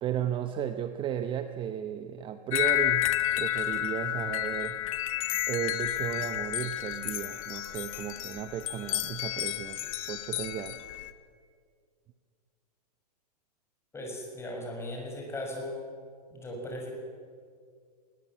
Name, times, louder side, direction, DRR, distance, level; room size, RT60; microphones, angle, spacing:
voice 1, 0.0-3.1 3.4-4.8 5.5-10.8, right 10 dB, 25° right, 9 dB, 0.8 m, -34 dB
sound 1, 2.5-11.1, left 15 dB, 55° left, 1.3 m, -31 dB
voice 2, 13.9-15.8 16.3-16.9, left 1 dB, 10° left, 0 dB, 6.2 m, -37 dB
20.0 x 20.0 x 7.6 m, 2.1 s
hypercardioid pair, 135°, 21 cm